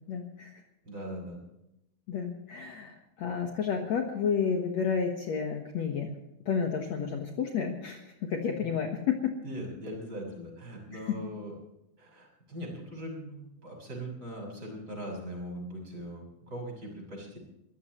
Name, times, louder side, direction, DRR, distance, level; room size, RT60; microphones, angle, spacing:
voice 1, 0.1-0.6 2.1-6.1 6.5-9.3 10.9-11.2, left 6 dB, 60° left, 2 dB, 2.3 m, -31 dB
voice 2, 0.8-1.4 9.4-11.6 12.0-17.4, equal, 25° right, 0 dB, 6.9 m, -40 dB
25.0 x 15.5 x 3.1 m, 0.86 s
omnidirectional pair, 4.1 m